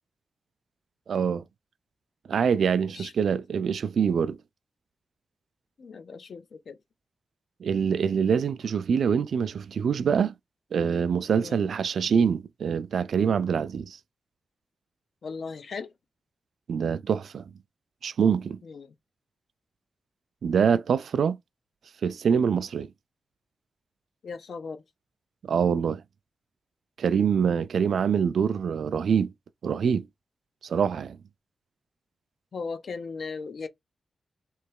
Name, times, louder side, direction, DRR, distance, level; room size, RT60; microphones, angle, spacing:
voice 1, 1.1-1.4 2.3-4.4 7.6-10.3 10.7-14.0 16.7-17.4 18.0-18.6 20.4-21.4 22.0-22.9 25.4-26.0 27.0-29.3 29.6-30.1 30.6-31.2, right 7 dB, 75° right, 0.3 m, -25 dB
voice 2, 2.9-3.3 5.8-6.8 11.4-11.7 15.2-15.9 18.6-18.9 24.2-24.8 32.5-33.7, left 4 dB, 60° left, 0.6 m, -37 dB
3.3 x 2.9 x 4.6 m
wide cardioid pair, 135°, 0 cm